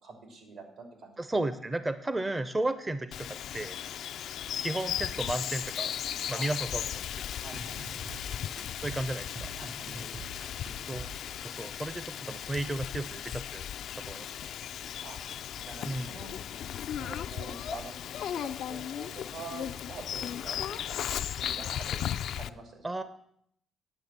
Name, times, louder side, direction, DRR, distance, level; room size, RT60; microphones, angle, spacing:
voice 1, 0.0-1.1 6.3-6.5 7.4-7.8 9.6-10.3 15.0-15.2 15.6-16.3 16.9-22.0 22.3-22.9, right 4 dB, 75° right, 3 dB, 3.0 m, -46 dB
voice 2, 1.2-3.8 4.6-5.9 6.3-7.0 8.8-9.5 10.9-11.1 11.4-13.6 14.0-14.3 15.8-16.1 22.8-23.0, right 2 dB, 20° right, 12 dB, 0.5 m, -33 dB
Bird vocalization bird call bird song, 3.1-22.5, left 10 dB, 75° left, 0.3 m, -36 dB
sound 1, 7.5-11.4, right 2 dB, 55° right, 2.6 m, -45 dB
9.9 x 6.4 x 7.3 m, 0.70 s
cardioid pair, 90°, 0 cm